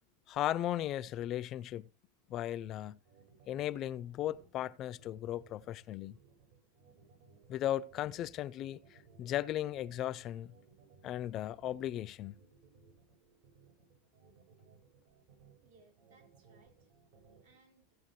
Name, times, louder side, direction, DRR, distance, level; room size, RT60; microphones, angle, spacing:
voice 1, 0.3-1.9 2.3-3.0 3.5-6.2 7.5-10.5 11.0-12.3, left 12 dB, 40° left, 0.5 m, -36 dB
sound 1, 2.8-17.5, right 5 dB, 65° right, 5.7 m, -63 dB
voice 2, 15.6-16.9 17.1-18.0, right 3 dB, 85° right, 4.3 m, -67 dB
16.5 x 8.3 x 3.2 m
supercardioid pair, 120°, 0 cm